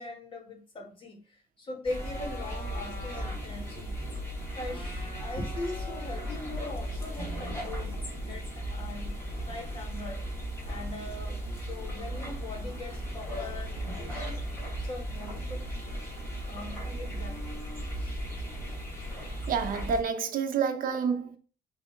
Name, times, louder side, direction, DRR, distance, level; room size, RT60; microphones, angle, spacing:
voice 1, 0.0-4.0 4.6-10.2 10.6-14.5 14.8-15.7 16.5-17.5 17.8-18.2, left 2 dB, 35° left, 2.0 m, -41 dB
sound 1, 1.8-20.0, equal, 15° left, 3.1 m, -36 dB
voice 2, 19.5-21.4, right 6 dB, 65° right, 0.9 m, -28 dB
5.9 x 3.6 x 5.2 m
cardioid pair, 165°, 15 cm